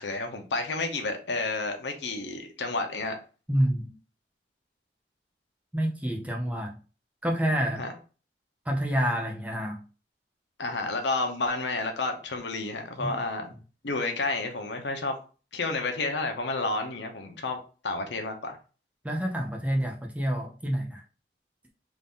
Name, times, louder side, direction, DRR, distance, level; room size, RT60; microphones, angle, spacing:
voice 1, 0.0-3.2 7.7-7.9 10.6-13.5 13.8-15.2 15.5-18.6, left 3 dB, 85° left, 0.9 m, -30 dB
voice 2, 3.5-3.9 5.7-6.8 7.2-7.9 8.7-9.8 13.0-13.2 19.0-21.0, equal, 10° right, 0.5 m, -28 dB
3.7 x 2.6 x 3.7 m
head